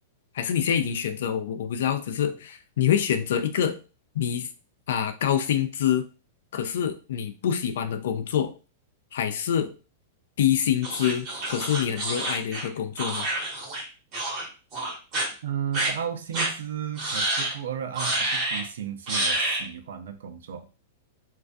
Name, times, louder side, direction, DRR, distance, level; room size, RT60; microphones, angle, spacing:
voice 1, 0.3-3.8 4.1-4.5 4.9-6.1 6.5-8.5 9.1-9.7 10.4-13.3, left 9 dB, 70° left, 9 dB, 0.3 m, -26 dB
sound 1, 10.8-13.8 14.1-14.5 14.7-15.3 15.7-15.9 16.3-16.5 17.0-17.5 18.0-18.6 19.1-19.7, right 2 dB, 30° right, 1.1 m, -28 dB
voice 2, 15.4-20.6, right 9 dB, 80° right, 6 dB, 0.4 m, -34 dB
2.3 x 2.2 x 2.5 m, 0.34 s
supercardioid pair, 170°, 0 cm